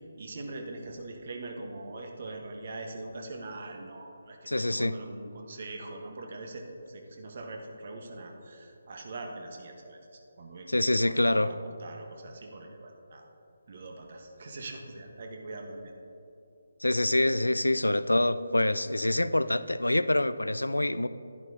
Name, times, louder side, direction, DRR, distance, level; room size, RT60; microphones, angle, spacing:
voice 1, 0.2-13.3 13.7-15.9, right 2 dB, 50° right, 3 dB, 1.2 m, -42 dB
voice 2, 4.5-5.0 10.7-11.5 16.8-21.1, left 1 dB, 85° left, 14 dB, 0.3 m, -26 dB
11.0 x 10.5 x 2.7 m, 2.8 s
figure-of-eight pair, 150°, 0 cm